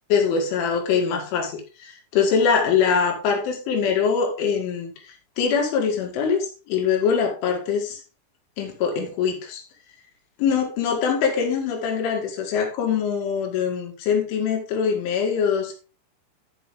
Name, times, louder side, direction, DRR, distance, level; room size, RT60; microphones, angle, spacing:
voice 1, 0.1-8.0 8.6-9.6 10.4-15.7, left 6 dB, 80° left, 2 dB, 4.6 m, -23 dB
12.5 x 6.2 x 3.7 m, 0.33 s
omnidirectional pair, 5.5 m